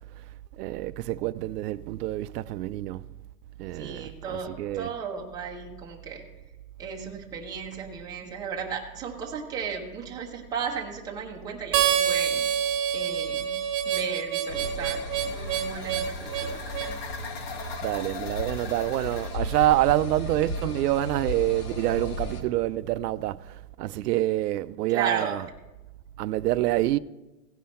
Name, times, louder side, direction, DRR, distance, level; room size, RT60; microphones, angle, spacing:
voice 1, 0.6-3.0 3.6-4.9 17.8-25.4 26.2-27.0, right 15 dB, 90° right, 0.5 m, -27 dB
voice 2, 3.7-6.2 6.8-12.5 12.9-13.5 13.9-17.0 24.9-25.3, right 6 dB, 10° right, 0.7 m, -35 dB
Harmonica, 11.7-17.0, right 9 dB, 25° right, 1.2 m, -27 dB
sound 1, 14.5-22.4, left 1 dB, 80° left, 1.7 m, -35 dB
sound 2, 14.5-19.8, left 5 dB, 40° left, 1.2 m, -41 dB
16.5 x 5.7 x 4.3 m
supercardioid pair, 165°, 46 cm